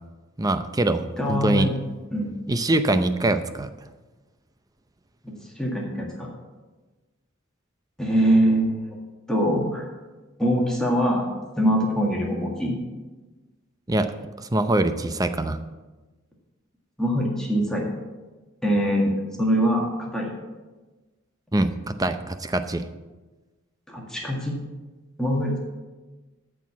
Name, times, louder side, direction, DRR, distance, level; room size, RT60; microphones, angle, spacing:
voice 1, 0.4-1.7 2.5-3.7 13.9-14.1 14.4-15.6 21.5-22.9, right 1 dB, 20° right, 9 dB, 0.6 m, -23 dB
voice 2, 1.2-1.7 2.1-2.3 5.2-6.3 8.0-9.0 9.3-9.8 10.4-11.3 11.6-12.8 17.0-17.9 18.6-19.1 19.4-20.3 23.9-24.6 25.2-25.6, equal, 5° left, -2 dB, 1.8 m, -23 dB
14.0 x 4.7 x 7.2 m, 1.2 s
head